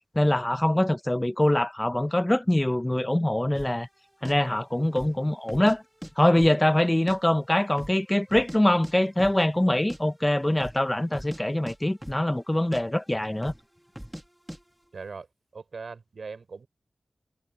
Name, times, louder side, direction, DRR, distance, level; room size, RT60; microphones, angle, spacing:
voice 1, 0.1-3.9 4.2-5.8 6.2-13.5, left 1 dB, 20° left, 0.8 m, -24 dB
sound 1, 3.5-3.8 4.2-4.3 4.9-5.2 5.5-6.1 6.4-7.2 7.4-7.5 7.8-8.6 8.8-8.9 9.2-9.4 9.7-10.0 10.5-10.8 11.1-11.4 11.7-12.5 12.7-12.8 13.4-13.7 14.0-14.2 14.5-14.6, equal, 5° right, 2.1 m, -40 dB
voice 2, 14.9-15.3 15.5-16.7, right 4 dB, 85° right, 5.7 m, -40 dB
cardioid pair, 45°, 0 cm